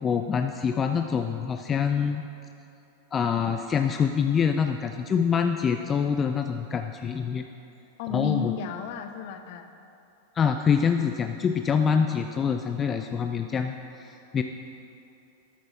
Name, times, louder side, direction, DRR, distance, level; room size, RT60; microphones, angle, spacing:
voice 1, 0.0-2.3 3.1-7.5 8.1-8.5 10.4-13.7 14.0-14.4, left 6 dB, 25° left, 6 dB, 0.4 m, -25 dB
voice 2, 8.0-9.7, left 7 dB, 50° left, 8 dB, 0.7 m, -32 dB
13.0 x 12.5 x 2.5 m, 2.7 s
figure-of-eight pair, 90°, 0 cm